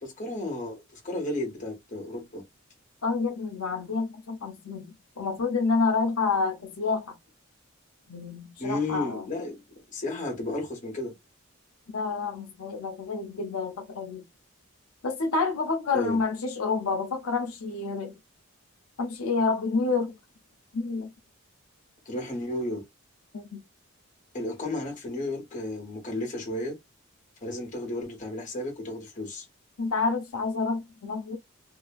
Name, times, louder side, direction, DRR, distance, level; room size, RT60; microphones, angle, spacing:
voice 1, 0.0-2.4 8.6-9.6 9.9-11.1 15.9-16.2 22.0-22.8 24.3-26.8 27.4-29.4, left 1 dB, 35° left, 1.3 m, -33 dB
voice 2, 3.0-7.1 8.1-9.2 11.9-14.2 15.0-18.1 19.0-20.1 20.7-21.1 23.3-23.6 29.8-31.4, left 4 dB, 85° left, 0.6 m, -28 dB
2.7 x 2.4 x 2.4 m
head